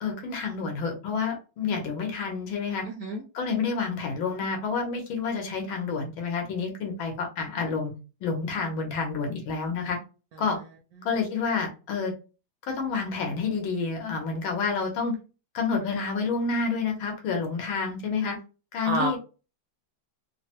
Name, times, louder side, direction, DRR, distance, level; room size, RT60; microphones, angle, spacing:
voice 1, 0.0-2.8 3.3-7.9 8.2-10.0 10.4-10.6 11.0-12.1 12.7-15.1 15.5-18.4 18.7-19.2, left 5 dB, 80° left, 3 dB, 1.7 m, -29 dB
voice 2, 2.8-3.2 18.8-19.2, right 2 dB, 70° right, 1 dB, 0.9 m, -28 dB
3.8 x 2.0 x 2.8 m, 0.32 s
omnidirectional pair, 2.2 m